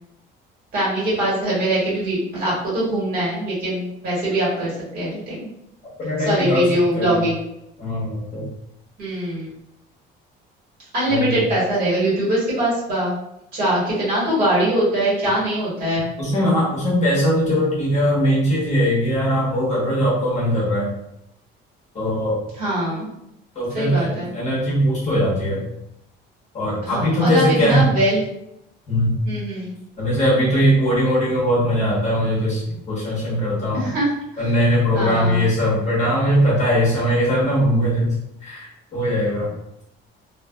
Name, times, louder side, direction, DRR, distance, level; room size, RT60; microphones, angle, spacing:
voice 1, 0.7-5.5 6.2-7.4 9.0-9.5 10.9-13.1 13.5-16.1 22.6-23.1 23.7-24.3 26.8-28.2 29.2-29.7 33.7-34.2 34.9-35.5, right 1 dB, 45° right, -8 dB, 1.4 m, -22 dB
voice 2, 6.0-6.7 6.9-7.2 7.8-8.5 11.1-11.4 16.2-20.9 21.9-22.4 23.5-25.6 26.5-27.8 28.9-29.1 30.0-32.6 32.9-33.9 34.4-38.1 38.4-39.5, equal, 35° left, -7 dB, 1.0 m, -20 dB
2.5 x 2.4 x 2.2 m, 0.81 s
cardioid pair, 155°, 21 cm